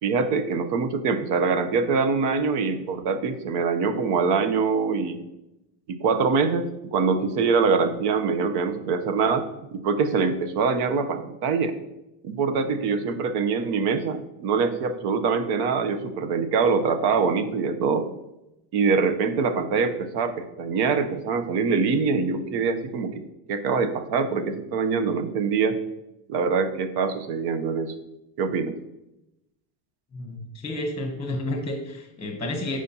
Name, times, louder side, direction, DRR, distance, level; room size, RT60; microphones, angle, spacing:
voice 1, 0.0-5.2 5.9-11.7 12.2-18.1 18.7-23.2 23.5-25.8 26.3-27.9 28.4-28.7, right 5 dB, 65° right, 9 dB, 0.9 m, -24 dB
voice 2, 30.1-32.8, left 1 dB, 15° left, 3 dB, 0.9 m, -31 dB
9.3 x 5.0 x 2.9 m, 0.91 s
cardioid pair, 125°, 42 cm